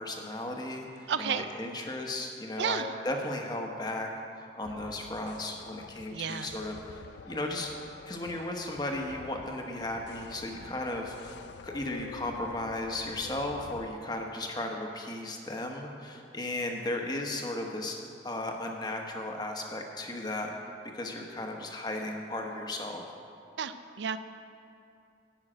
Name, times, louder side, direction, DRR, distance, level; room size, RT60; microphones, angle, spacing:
voice 1, 0.0-4.1 4.5-7.7 8.1-11.4 11.6-18.0 18.2-20.5 20.9-23.0, left 1 dB, 20° left, 2 dB, 1.0 m, -35 dB
voice 2, 1.1-1.5 2.6-2.9 6.1-6.5 23.6-24.2, right 7 dB, 70° right, 10 dB, 0.4 m, -32 dB
sound 1, 4.6-13.9, left 5 dB, 65° left, 0.4 m, -48 dB
11.0 x 5.6 x 8.8 m, 2.5 s
head